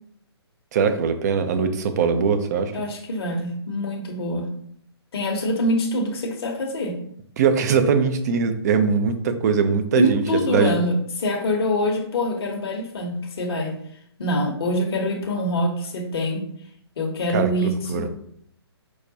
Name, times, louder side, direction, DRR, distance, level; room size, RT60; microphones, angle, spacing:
voice 1, 0.7-2.7 7.4-10.7 17.3-18.1, right 5 dB, 40° right, 9 dB, 0.4 m, -21 dB
voice 2, 2.7-4.5 5.1-7.0 10.0-13.8 14.2-16.4 17.0-18.1, left 1 dB, 60° left, 1 dB, 0.8 m, -25 dB
4.7 x 2.1 x 2.7 m, 0.66 s
figure-of-eight pair, 135°, 14 cm